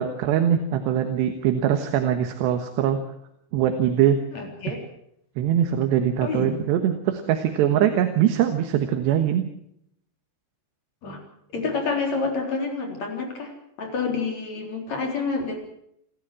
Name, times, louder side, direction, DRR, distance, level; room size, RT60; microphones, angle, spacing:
voice 1, 0.0-3.0 3.5-4.2 5.4-9.5, right 10 dB, 80° right, 6 dB, 3.6 m, -22 dB
voice 2, 4.3-4.8 6.2-6.5 11.0-11.2 11.5-13.5 13.8-15.6, left 4 dB, 40° left, 3 dB, 4.8 m, -28 dB
29.0 x 12.5 x 7.6 m, 0.73 s
omnidirectional pair, 4.9 m